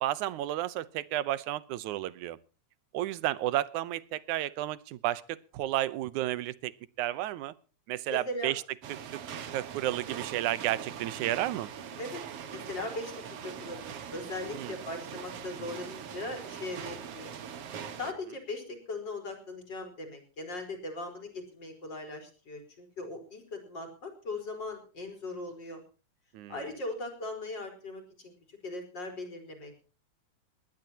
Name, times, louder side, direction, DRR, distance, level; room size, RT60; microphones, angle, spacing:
voice 1, 0.0-2.4 2.9-6.7 7.0-7.5 7.9-8.6 9.5-11.7 14.6-14.7 26.3-26.5, right 14 dB, 90° right, 17 dB, 2.3 m, -32 dB
voice 2, 8.1-8.5 12.0-12.2 12.5-13.9 14.1-17.3 17.7-25.8 26.5-29.8, left 2 dB, 35° left, 5 dB, 5.0 m, -39 dB
sound 1, 8.8-18.1, right 7 dB, 60° right, 2.2 m, -42 dB
21.0 x 18.5 x 2.9 m, 0.37 s
omnidirectional pair, 3.3 m